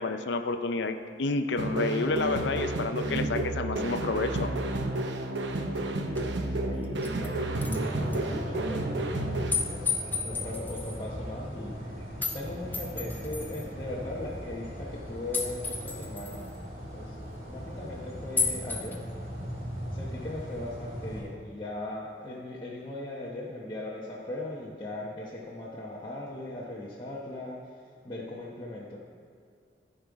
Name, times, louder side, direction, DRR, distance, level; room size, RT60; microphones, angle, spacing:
voice 1, 0.0-4.5, left 3 dB, 75° left, 8 dB, 0.5 m, -30 dB
sound 1, 1.6-9.5, right 2 dB, 80° right, 0.8 m, -31 dB
voice 2, 5.7-12.0 12.3-16.5 16.9-17.1 17.5-19.0 19.9-29.0, left 2 dB, 25° left, -6 dB, 1.0 m, -39 dB
sound 2, 6.2-6.3 6.8-7.3 7.6-7.8 8.1-8.2 9.5-11.0 12.2-12.4 12.7-13.6 15.3-16.5 18.4-19.0, left 4 dB, 10° left, 0.6 m, -32 dB
sound 3, 7.5-21.2, equal, 50° right, 2.6 m, -38 dB
13.5 x 5.4 x 4.7 m, 2.3 s
head